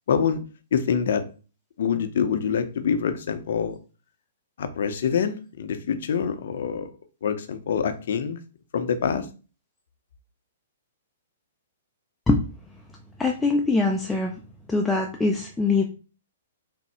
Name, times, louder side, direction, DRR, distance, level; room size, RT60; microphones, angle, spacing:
voice 1, 0.1-0.4 0.7-1.2 1.8-3.8 4.6-6.9 7.2-8.4 8.7-9.3, left 7 dB, 65° left, 9 dB, 0.6 m, -25 dB
voice 2, 13.2-14.3 14.7-15.8, left 3 dB, 10° left, 1 dB, 0.4 m, -22 dB
3.5 x 2.0 x 4.2 m, 0.35 s
hypercardioid pair, 145°, 0 cm